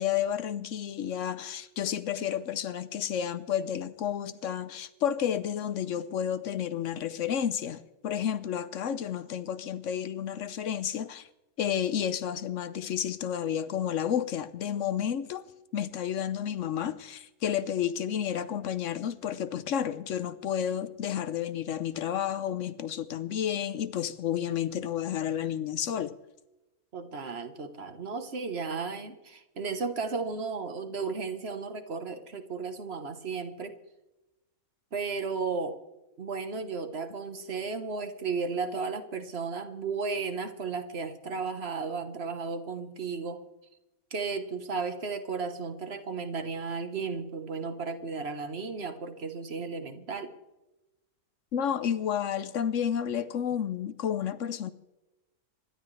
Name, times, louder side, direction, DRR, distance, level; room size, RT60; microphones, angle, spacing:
voice 1, 0.0-11.3 11.6-15.5 15.7-26.2 51.5-54.7, left 9 dB, 60° left, 1.0 m, -31 dB
voice 2, 26.9-33.7 34.9-35.8 36.2-43.4 44.1-50.3, right 4 dB, 45° right, 1.4 m, -34 dB
26.5 x 12.0 x 3.3 m
omnidirectional pair, 1.6 m